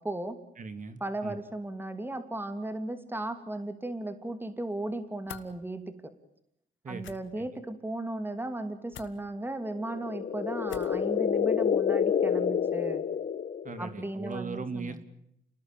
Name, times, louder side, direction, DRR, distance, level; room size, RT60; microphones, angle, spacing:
voice 1, 0.0-0.4 1.0-6.1 6.9-13.0 13.8-15.0, right 2 dB, 10° right, 10 dB, 2.6 m, -36 dB
voice 2, 0.6-1.4 6.8-7.4 13.6-15.0, right 4 dB, 40° right, 10 dB, 2.8 m, -39 dB
sound 1, 5.3-5.5 7.0-7.2 8.9-9.1 10.7-11.0, left 10 dB, 75° left, 2.2 m, -45 dB
sound 2, 9.8-14.0, left 7 dB, 45° left, 1.3 m, -28 dB
29.0 x 20.0 x 9.2 m, 0.77 s
cardioid pair, 90°, 20 cm